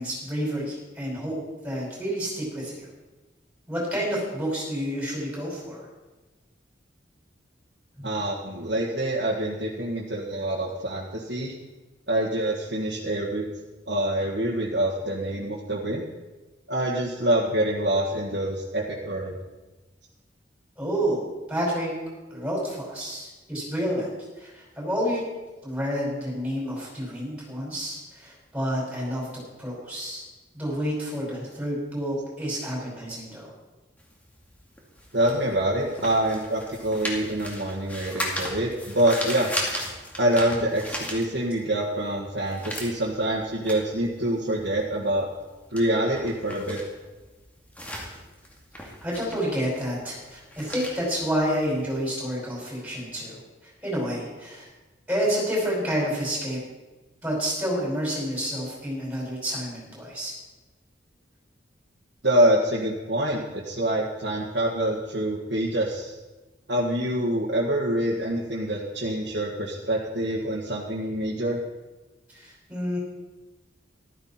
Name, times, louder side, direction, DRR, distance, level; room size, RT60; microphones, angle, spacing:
voice 1, 0.0-1.4 1.6-2.9 3.7-5.8 8.0-8.1 20.8-21.9 22.3-24.1 24.4-25.2 25.6-30.2 30.5-33.5 49.0-54.7 55.1-56.6 57.2-60.3 72.3-73.0, equal, 5° right, -5 dB, 5.5 m, -29 dB
voice 2, 8.0-11.5 12.1-13.5 13.9-16.1 16.7-19.4 35.1-39.5 40.2-45.3 45.7-46.8 62.2-66.1 66.7-71.6, right 1 dB, 60° right, -3 dB, 1.7 m, -26 dB
sound 1, 34.0-41.8 42.1-52.2, equal, 10° left, 2.2 m, -36 dB
14.5 x 13.0 x 4.4 m, 1.2 s
head